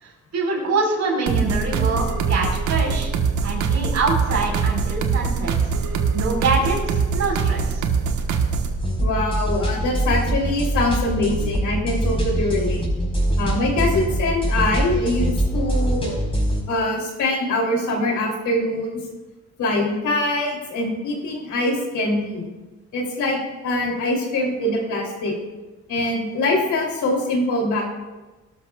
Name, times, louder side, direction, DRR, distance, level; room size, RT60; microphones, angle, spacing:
voice 1, 0.0-3.1 3.4-5.6 6.1-7.8, right 3 dB, 60° right, 0 dB, 4.6 m, -25 dB
sound 1, 1.3-8.8, right 5 dB, 75° right, 1.3 m, -23 dB
sound 2, 8.8-16.6, right 1 dB, 20° left, 4.6 m, -23 dB
voice 2, 9.0-12.9 13.4-16.2 16.7-18.9 19.6-22.5 22.9-25.3 25.9-27.9, left 1 dB, 75° left, -1 dB, 3.2 m, -23 dB
18.5 x 12.5 x 2.4 m, 1.2 s
cardioid pair, 90°, 30 cm